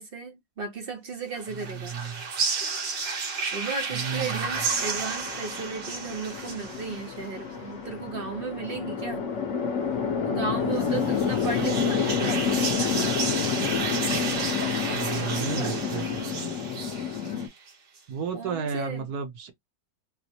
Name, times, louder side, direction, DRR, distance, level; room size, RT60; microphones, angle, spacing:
voice 1, 0.0-2.0 3.5-9.3 10.2-12.5 15.0-16.5 18.3-19.1, right 4 dB, 50° right, 0.7 m, -35 dB
sound 1, 1.3-7.3 10.8-17.7, right 4 dB, 85° right, 1.9 m, -32 dB
voice 2, 1.5-2.2 3.9-4.7 14.9-16.4 18.1-19.5, right 6 dB, 65° right, 1.2 m, -33 dB
Chatter / Traffic noise roadway noise / Train, 4.0-17.5, left 6 dB, 55° left, 1.0 m, -29 dB
4.0 x 2.1 x 2.8 m
omnidirectional pair, 1.9 m